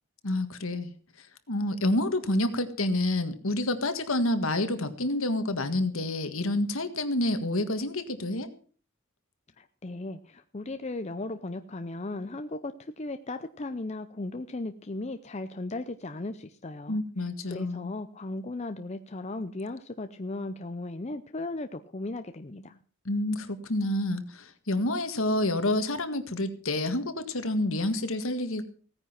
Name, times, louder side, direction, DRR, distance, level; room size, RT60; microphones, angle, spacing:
voice 1, 0.2-0.9 1.5-8.5 16.9-17.9 23.1-28.6, left 1 dB, 65° left, 9 dB, 1.8 m, -28 dB
voice 2, 9.6-17.0 17.5-22.8, left 2 dB, 30° left, 8 dB, 0.6 m, -36 dB
16.5 x 9.7 x 5.9 m, 0.43 s
head